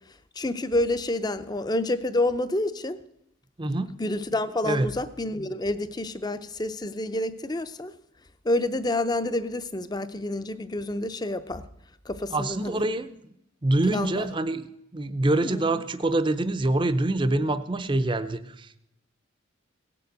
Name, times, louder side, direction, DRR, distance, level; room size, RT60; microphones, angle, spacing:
voice 1, 0.4-3.0 4.0-7.9 8.4-11.6 12.1-12.8 13.9-14.2 15.4-15.8, left 1 dB, 20° left, 12 dB, 0.6 m, -28 dB
voice 2, 3.6-4.0 4.6-4.9 12.3-13.1 13.6-14.7 14.9-18.8, right 2 dB, 25° right, 12 dB, 0.6 m, -25 dB
17.5 x 6.9 x 8.0 m, 0.80 s
head